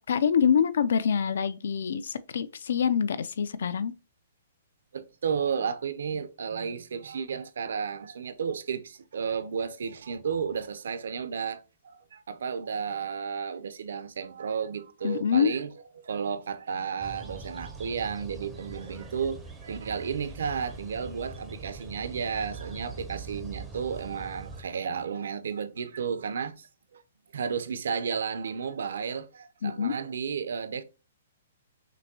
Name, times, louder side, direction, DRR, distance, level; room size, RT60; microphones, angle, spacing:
voice 1, 0.0-3.9 15.0-15.5 29.6-29.9, left 7 dB, 60° left, 0.4 m, -25 dB
voice 2, 4.9-15.7 16.0-26.7 26.9-27.0 27.3-30.8, right 6 dB, 70° right, 0.5 m, -33 dB
sound 1, 17.0-24.6, right 3 dB, 5° right, 0.5 m, -42 dB
6.0 x 2.6 x 2.8 m
hypercardioid pair, 180°, 0 cm